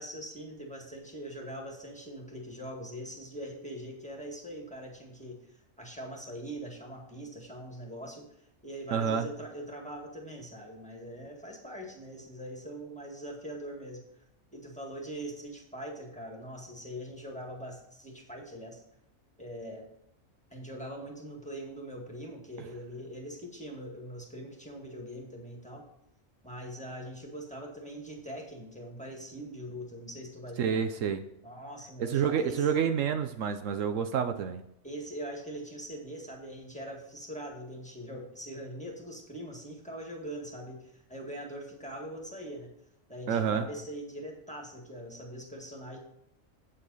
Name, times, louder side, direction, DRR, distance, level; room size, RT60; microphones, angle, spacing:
voice 1, 0.0-8.3 8.6-14.0 14.5-18.8 19.4-19.9 20.5-25.9 26.4-30.8 31.4-32.7 34.8-42.7 43.1-46.0, right 1 dB, 5° left, 0 dB, 1.9 m, -42 dB
voice 2, 8.9-9.3 30.6-31.2 32.0-34.6 43.3-43.7, right 7 dB, 75° right, 8 dB, 1.0 m, -28 dB
8.6 x 7.8 x 4.1 m, 0.81 s
omnidirectional pair, 1.4 m